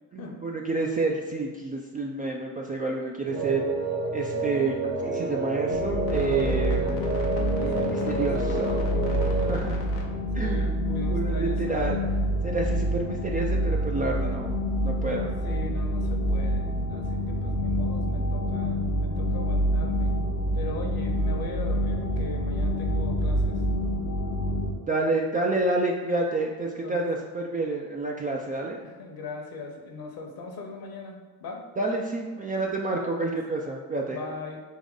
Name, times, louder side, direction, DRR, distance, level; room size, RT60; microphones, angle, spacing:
voice 1, 0.1-3.6 4.1-8.7 9.5-9.8 10.3-12.0 12.4-15.3 24.9-28.8 31.8-34.2, right 3 dB, 20° right, -1 dB, 0.3 m, -29 dB
sound 1, 3.3-9.5, right 2 dB, 75° right, 1.1 m, -29 dB
sound 2, 5.7-24.7, equal, 80° left, 0.8 m, -27 dB
voice 2, 7.6-8.9 10.3-12.0 15.1-20.1 20.5-23.6 26.6-27.0 28.8-31.6 32.9-33.4 34.1-34.6, left 3 dB, 50° left, 2 dB, 1.0 m, -40 dB
3.7 x 2.9 x 3.7 m, 1.4 s
hypercardioid pair, 65°, 46 cm